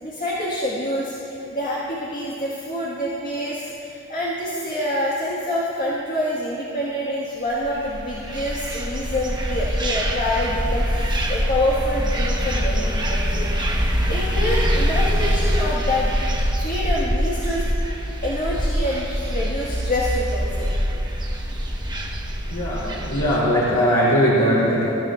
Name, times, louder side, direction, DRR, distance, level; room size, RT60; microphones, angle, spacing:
voice 1, 0.0-16.2 16.6-17.7 18.2-20.7, left 1 dB, 40° left, -6 dB, 1.8 m, -26 dB
sound 1, 7.7-23.4, equal, 20° right, 1.2 m, -24 dB
voice 2, 22.5-24.9, equal, 85° left, -9 dB, 3.4 m, -19 dB
23.0 x 14.5 x 2.5 m, 3.0 s
head